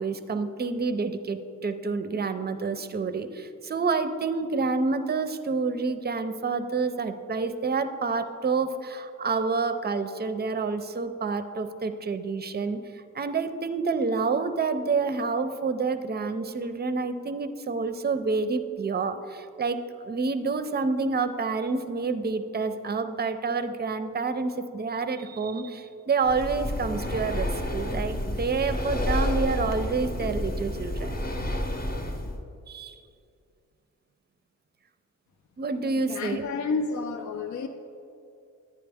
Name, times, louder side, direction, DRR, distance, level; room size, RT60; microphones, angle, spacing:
voice 1, 0.0-31.1 32.7-33.0 35.6-36.4, right 4 dB, 30° right, 10 dB, 0.5 m, -28 dB
Breathing, 26.2-32.4, left 1 dB, 30° left, 0.8 m, -30 dB
voice 2, 36.1-37.7, left 4 dB, 65° left, 6 dB, 0.5 m, -30 dB
10.0 x 9.6 x 3.5 m, 2.5 s
wide cardioid pair, 95°, 31 cm